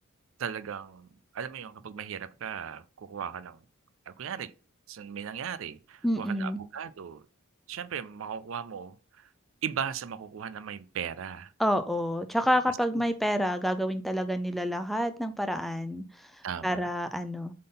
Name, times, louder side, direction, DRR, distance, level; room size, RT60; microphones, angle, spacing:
voice 1, 0.4-3.6 4.1-4.5 4.9-7.3 7.7-9.3 9.6-11.5 12.7-13.0 16.4-16.9, right 7 dB, 65° right, 0.4 m, -37 dB
voice 2, 6.0-6.6 11.6-16.3 16.6-17.5, equal, ahead, 0.4 m, -28 dB
7.6 x 3.7 x 3.9 m
head